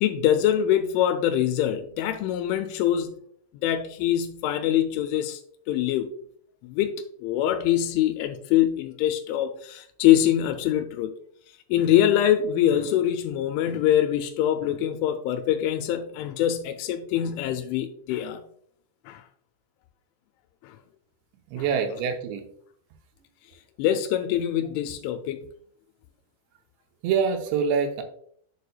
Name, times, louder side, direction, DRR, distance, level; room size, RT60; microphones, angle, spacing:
voice 1, 0.0-3.2 3.6-5.4 5.7-6.1 6.6-11.1 11.7-18.5 19.1-19.2 20.6-20.8 21.6-21.7 23.8-25.4, left 11 dB, 90° left, 6 dB, 3.0 m, -24 dB
voice 2, 21.5-22.5 27.0-28.0, right 6 dB, 80° right, 5 dB, 3.0 m, -25 dB
8.3 x 6.7 x 2.3 m, 0.63 s
omnidirectional pair, 5.4 m